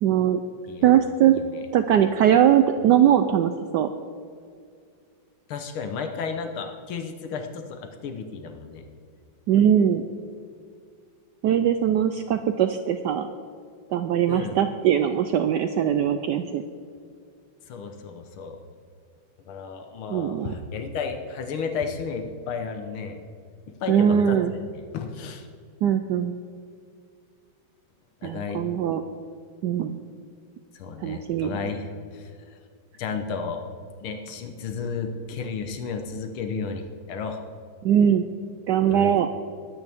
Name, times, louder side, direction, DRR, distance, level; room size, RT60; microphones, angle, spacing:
voice 1, 0.0-0.4 0.8-1.4 1.7-3.9 9.5-10.0 11.4-13.3 13.9-16.6 20.1-20.5 23.9-24.5 25.8-26.4 28.2-29.0 29.6-30.0 31.0-31.6 37.8-38.3 38.7-39.3, right 9 dB, 75° right, 8 dB, 1.0 m, -21 dB
voice 2, 5.5-8.8 14.3-14.6 17.7-18.6 19.5-23.2 23.8-25.5 28.2-28.6 30.7-32.6 33.0-33.6 34.0-37.4 38.9-39.1, left 5 dB, 85° left, 5 dB, 1.8 m, -33 dB
21.5 x 9.2 x 3.5 m, 2.3 s
omnidirectional pair, 2.3 m